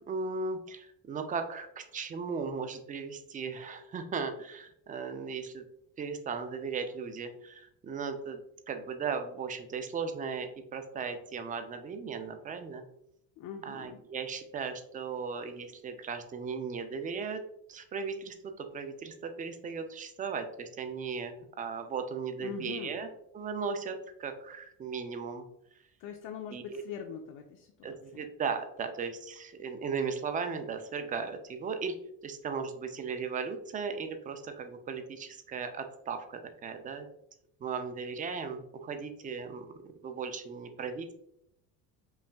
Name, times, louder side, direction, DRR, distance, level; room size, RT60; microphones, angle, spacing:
voice 1, 0.1-5.6 6.0-8.4 8.7-12.8 13.6-17.4 17.7-23.1 23.3-25.4 26.5-26.8 27.8-31.9 32.2-37.1 37.6-39.7 40.0-41.1, right 5 dB, 25° right, 7 dB, 0.4 m, -37 dB
voice 2, 13.4-14.0 22.4-23.0 26.0-28.2, left 6 dB, 65° left, 3 dB, 0.5 m, -42 dB
5.5 x 2.4 x 2.2 m, 0.75 s
cardioid pair, 130°, 35 cm